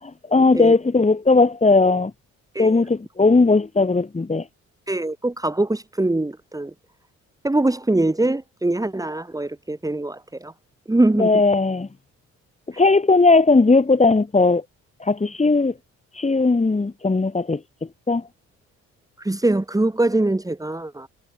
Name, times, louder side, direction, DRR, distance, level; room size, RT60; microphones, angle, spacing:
voice 1, 0.0-2.1 2.6-4.4 11.2-11.9 12.8-14.6 15.0-15.7 16.2-17.6 18.1-18.2, left 3 dB, 25° left, 6.6 m, -17 dB
voice 2, 4.9-6.7 7.4-10.5 10.9-11.3 19.2-21.1, right 2 dB, 10° right, 3.6 m, -22 dB
cardioid pair, 90°, 30 cm